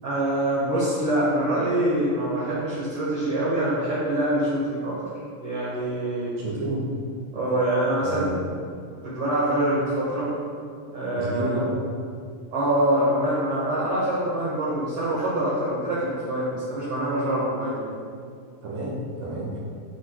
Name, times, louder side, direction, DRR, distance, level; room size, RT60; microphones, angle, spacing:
voice 1, 0.0-5.0 5.4-6.4 7.3-8.4 9.0-10.3 10.9-11.6 12.5-17.9, right 1 dB, 55° right, -9 dB, 1.8 m, -25 dB
voice 2, 6.4-6.8 8.0-8.4 11.1-11.8 18.6-19.6, right 2 dB, 75° right, -5 dB, 3.2 m, -30 dB
13.0 x 4.9 x 2.2 m, 2.2 s
omnidirectional pair, 4.0 m